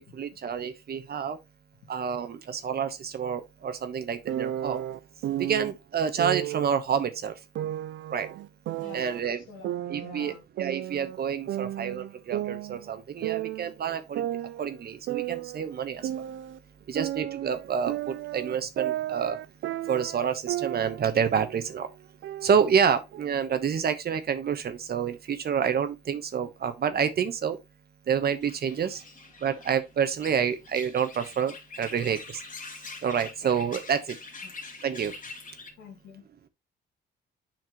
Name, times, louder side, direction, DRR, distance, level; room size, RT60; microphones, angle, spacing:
voice 1, 0.1-1.4 1.9-4.8 5.4-7.3 8.1-8.3 8.9-9.4 9.9-14.3 14.6-16.1 16.9-19.4 19.9-21.9 22.4-27.6 28.1-29.0 29.4-32.4 33.0-34.2 34.8-35.1, right 7 dB, 50° right, 1.2 m, -28 dB
sound 1, 4.3-5.7 6.2-6.7 7.6-9.2 9.6-11.2 11.5-13.7 14.1-16.6 17.0-21.1 21.4-21.7 22.2-23.2, right 13 dB, 70° right, 0.5 m, -33 dB
voice 2, 9.5-10.4 29.4-29.6 34.4-34.5 35.8-36.2, left 5 dB, 85° left, 2.7 m, -48 dB
sound 2, 28.4-35.7, left 3 dB, 40° left, 2.2 m, -44 dB
7.6 x 5.9 x 3.1 m
cardioid pair, 90°, 20 cm